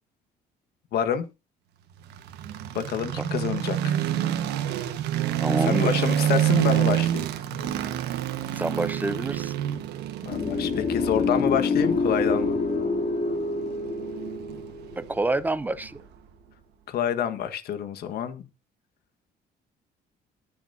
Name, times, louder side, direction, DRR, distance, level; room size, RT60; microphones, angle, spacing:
voice 1, 0.9-1.2 2.7-3.9 5.6-7.3 10.2-12.6 16.9-18.5, left 8 dB, 70° left, 1.6 m, -27 dB
sound 1, 2.0-16.2, right 11 dB, 85° right, 1.4 m, -28 dB
voice 2, 5.4-6.0 8.5-9.5 15.0-16.0, right 2 dB, 10° right, 0.7 m, -27 dB
sound 2, 10.3-15.4, left 3 dB, 50° left, 3.0 m, -27 dB
21.5 x 7.2 x 2.8 m
cardioid pair, 110°, 17 cm